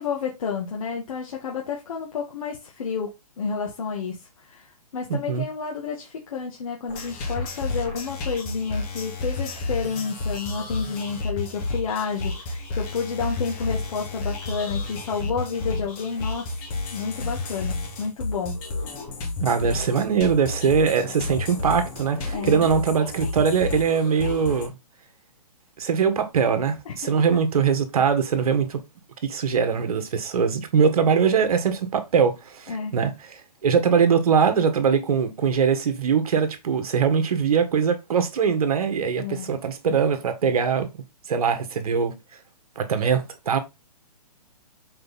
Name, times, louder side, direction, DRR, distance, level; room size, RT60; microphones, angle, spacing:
voice 1, 0.0-4.2 4.4-16.5 16.9-18.6 22.3-22.7 26.9-27.1 32.7-32.9 39.2-39.5, left 5 dB, 60° left, 1.9 m, -30 dB
voice 2, 5.1-5.4 19.4-24.7 25.8-28.8 29.2-40.9 41.3-42.2 42.7-43.6, right 6 dB, 60° right, 1.7 m, -22 dB
sound 1, 6.9-24.7, left 3 dB, 25° left, 2.3 m, -31 dB
6.7 x 4.6 x 4.1 m
hypercardioid pair, 145°, 20 cm